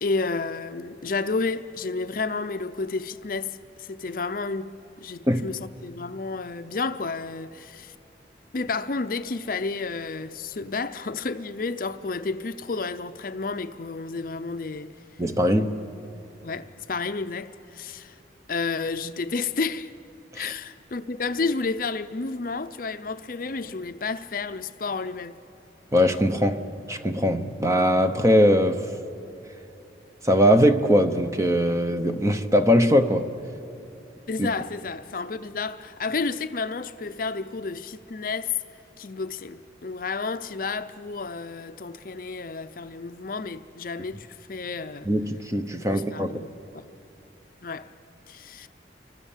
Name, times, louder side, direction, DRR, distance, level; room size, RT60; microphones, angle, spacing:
voice 1, 0.0-7.9 8.5-14.9 16.4-18.2 18.5-19.9 20.3-25.4 34.3-38.6 39.0-45.1 45.9-46.8 47.6-47.9 48.3-48.7, left 4 dB, 50° left, 0.6 m, -31 dB
voice 2, 15.2-15.8 20.3-20.5 25.9-28.9 30.2-33.3 34.4-34.5 45.1-46.3, equal, 15° right, 0.9 m, -21 dB
28.5 x 24.5 x 7.3 m
head